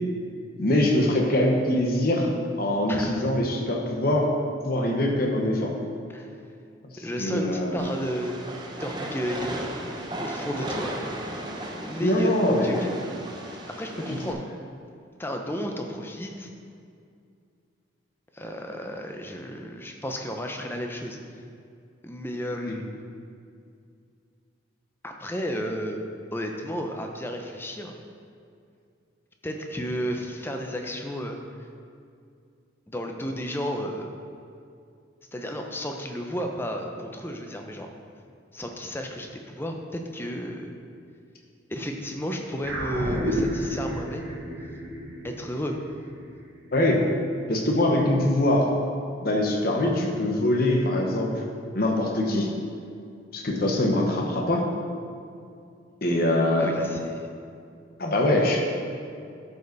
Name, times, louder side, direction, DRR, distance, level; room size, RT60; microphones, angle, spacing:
voice 1, 0.6-2.3 2.6-4.3 4.6-5.7 7.2-7.9 12.0-12.8 22.7-22.8 46.7-47.0 47.5-48.7 49.2-51.4 51.7-52.5 53.3-54.6 56.0-56.7 58.0-58.6, left 1 dB, 50° left, 0 dB, 1.1 m, -23 dB
voice 2, 2.9-3.3 6.1-6.3 7.0-8.5 8.8-9.7 10.2-11.5 11.7-12.9 13.7-14.4 15.2-16.5 18.3-21.2 22.0-22.9 25.0-26.0 26.3-28.0 29.4-31.4 32.9-34.1 35.3-37.9 38.5-40.7 41.7-44.4 45.2-45.8 56.6-57.3, equal, 10° left, 3 dB, 0.6 m, -32 dB
Train, 7.8-14.3, right 1 dB, 20° right, 0.8 m, -35 dB
sound 1, 42.6-47.3, equal, 65° right, 1.2 m, -32 dB
12.5 x 5.4 x 4.0 m, 2.4 s
head